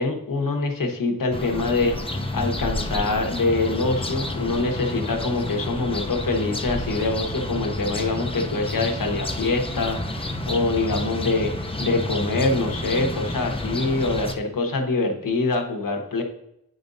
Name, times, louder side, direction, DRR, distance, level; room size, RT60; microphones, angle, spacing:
voice 1, 0.0-16.2, left 3 dB, 85° left, 3 dB, 1.1 m, -25 dB
sound 1, 1.3-14.3, left 1 dB, 15° left, 0.6 m, -30 dB
8.9 x 5.1 x 2.6 m, 0.80 s
wide cardioid pair, 75°, 32 cm